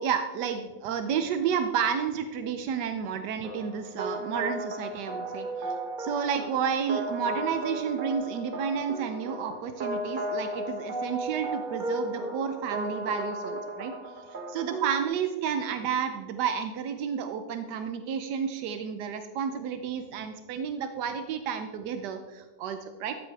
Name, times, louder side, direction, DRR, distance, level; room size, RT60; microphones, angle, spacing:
voice 1, 0.0-23.2, right 7 dB, 85° right, 8 dB, 1.3 m, -31 dB
sound 1, 3.4-15.1, right 1 dB, 35° right, 0.9 m, -35 dB
13.5 x 8.2 x 3.3 m, 1.3 s
omnidirectional pair, 1.7 m